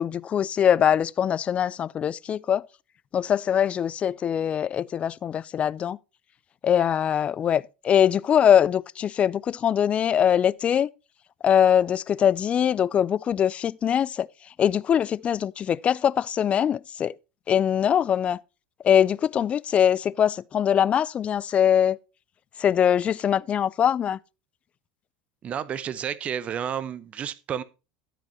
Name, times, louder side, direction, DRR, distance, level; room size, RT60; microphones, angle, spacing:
voice 1, 0.0-2.6 3.1-6.0 6.6-10.9 11.4-14.3 14.6-17.2 17.5-18.4 18.8-22.0 22.6-24.2, left 9 dB, 30° left, 0.4 m, -22 dB
voice 2, 25.4-27.6, right 8 dB, 35° right, 0.7 m, -31 dB
13.0 x 5.0 x 4.4 m
supercardioid pair, 105°, 4 cm